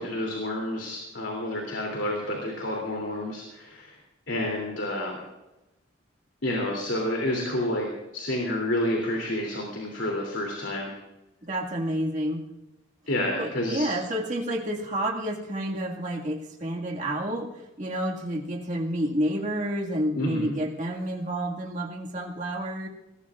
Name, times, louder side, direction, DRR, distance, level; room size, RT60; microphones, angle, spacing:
voice 1, 0.0-4.0 4.3-5.2 6.4-10.9 13.1-13.9 20.1-20.5, left 1 dB, 65° left, 0 dB, 3.0 m, -29 dB
voice 2, 11.4-12.4 13.3-17.5 17.8-22.9, right 1 dB, 40° right, 0 dB, 2.0 m, -29 dB
23.0 x 19.0 x 2.5 m, 0.99 s
head